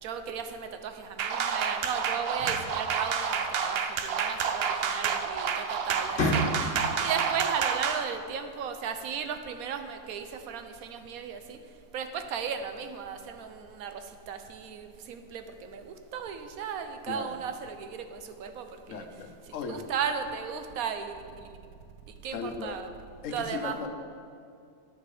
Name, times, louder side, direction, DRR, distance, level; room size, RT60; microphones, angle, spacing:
voice 1, 0.0-6.4 7.0-11.6 11.9-14.0 14.3-19.1 19.7-21.1 22.2-22.9 23.3-23.9, right 7 dB, 70° right, 8 dB, 1.1 m, -35 dB
sound 1, 1.2-8.0, right 6 dB, 85° right, 0.5 m, -29 dB
sound 2, 2.2-3.7 5.2-5.4 5.8-7.0, left 1 dB, 40° left, 1.4 m, -31 dB
voice 2, 18.9-19.8 22.3-22.8 23.2-23.9, left 5 dB, 60° left, 6 dB, 1.0 m, -37 dB
10.0 x 6.3 x 4.9 m, 2.4 s
omnidirectional pair, 1.7 m